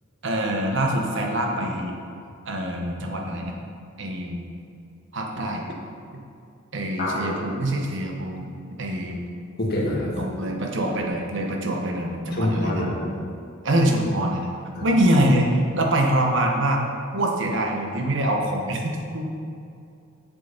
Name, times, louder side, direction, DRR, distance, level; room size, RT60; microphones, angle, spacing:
voice 1, 0.2-1.9 2.5-3.6 4.0-4.5 5.1-5.7 6.7-8.5 8.8-9.2 10.2-12.8 13.6-14.5 14.8-16.8 17.1-19.3, right 1 dB, 65° right, 1 dB, 1.2 m, -24 dB
voice 2, 7.0-7.4 9.6-10.1 12.3-13.1 14.7-15.0, left 1 dB, 50° left, -4 dB, 2.0 m, -26 dB
7.8 x 6.7 x 5.1 m, 2.5 s
head